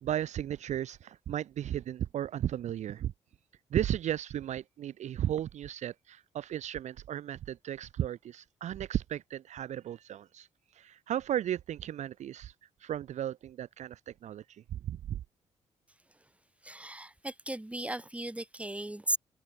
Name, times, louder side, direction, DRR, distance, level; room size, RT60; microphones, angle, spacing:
voice 1, 0.0-3.1 3.7-10.5 10.7-12.5 12.8-15.2, right 11 dB, 55° right, 0.7 m, -35 dB
voice 2, 16.6-19.2, right 1 dB, 10° right, 2.1 m, -36 dB
hypercardioid pair, 40°, 14 cm